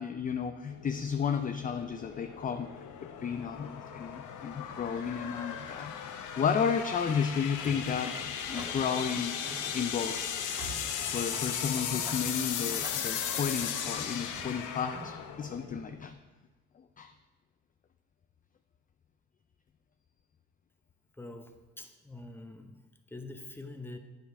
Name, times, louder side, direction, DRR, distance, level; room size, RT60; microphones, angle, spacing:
voice 1, 0.0-2.7 3.0-5.9 6.4-9.4 9.7-10.4 11.1-16.2 17.0-17.1, left 6 dB, 30° left, 8 dB, 0.4 m, -33 dB
sound 1, 0.7-16.1, left 8 dB, 85° left, 0.8 m, -37 dB
sound 2, 7.0-15.2, right 1 dB, 15° right, 1.5 m, -48 dB
voice 2, 21.2-24.0, left 2 dB, 5° left, 6 dB, 0.8 m, -45 dB
8.7 x 5.4 x 4.7 m, 1.2 s
cardioid pair, 90°, 30 cm